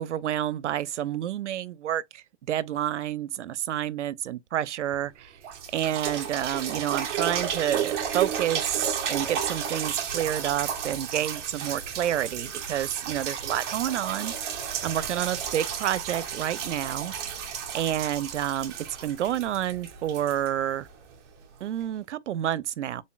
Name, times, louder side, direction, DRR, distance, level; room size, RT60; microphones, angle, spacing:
voice 1, 0.0-5.4 5.7-17.1 17.4-18.8 19.0-20.9 21.6-23.0, right 11 dB, 80° right, 0.6 m, -29 dB
sound 1, 4.9-5.0 5.4-21.2 21.8-21.9, right 8 dB, 20° right, 0.8 m, -33 dB
4.2 x 3.8 x 2.3 m
hypercardioid pair, 155°, 35 cm